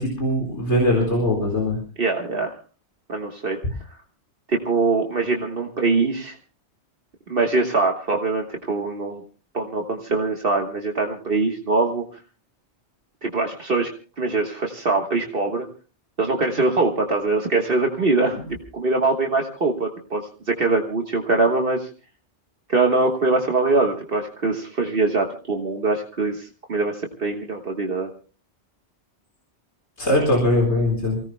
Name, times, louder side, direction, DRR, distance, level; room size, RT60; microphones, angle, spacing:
voice 1, 0.0-1.8 18.3-18.4 30.0-31.2, left 1 dB, 80° left, -1 dB, 4.9 m, -21 dB
voice 2, 2.0-2.5 3.1-3.6 4.5-6.4 7.3-9.2 9.5-12.0 13.2-13.9 14.2-15.7 16.2-21.9 22.7-28.1, right 3 dB, 55° right, 1 dB, 1.6 m, -23 dB
29.0 x 17.5 x 2.2 m, 0.37 s
omnidirectional pair, 1.2 m